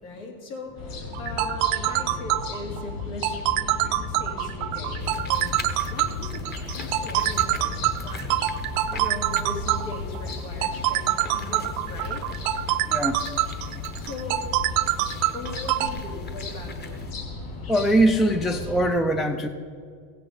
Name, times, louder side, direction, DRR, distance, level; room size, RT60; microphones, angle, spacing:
voice 1, 0.0-12.2 14.0-14.6 15.3-17.1, left 2 dB, 80° left, 1 dB, 2.9 m, -39 dB
sound 1, 0.8-18.9, left 3 dB, 50° left, 3.6 m, -35 dB
sound 2, 1.1-15.9, right 15 dB, 75° right, 0.8 m, -25 dB
sound 3, 5.0-17.1, left 3 dB, 25° left, 1.0 m, -44 dB
voice 2, 12.9-13.2 17.7-19.5, right 1 dB, ahead, 7 dB, 0.4 m, -22 dB
15.5 x 8.9 x 5.4 m, 2.2 s
supercardioid pair, 115°, 42 cm